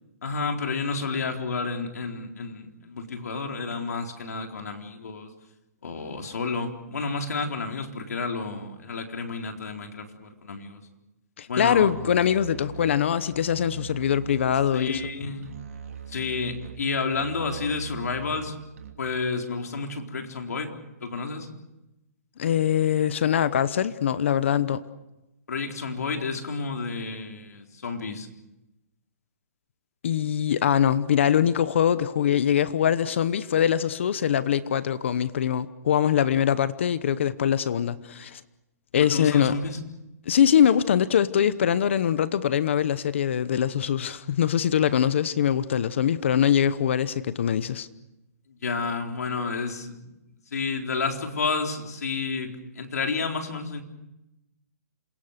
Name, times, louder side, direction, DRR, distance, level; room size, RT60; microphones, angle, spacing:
voice 1, 0.2-5.3 5.8-10.8 11.5-11.9 14.7-15.5 16.1-18.5 19.0-20.7 21.0-21.5 25.5-28.3 39.1-39.8 48.5-50.1 50.5-53.8, left 4 dB, 75° left, 4.1 m, -30 dB
voice 2, 11.4-15.0 22.4-24.8 30.0-38.4 38.9-39.5 40.3-47.9, left 9 dB, 45° left, 0.9 m, -23 dB
Musical instrument, 11.6-19.2, right 7 dB, 60° right, 2.8 m, -41 dB
27.5 x 23.0 x 6.7 m
hypercardioid pair, 175°, 9 cm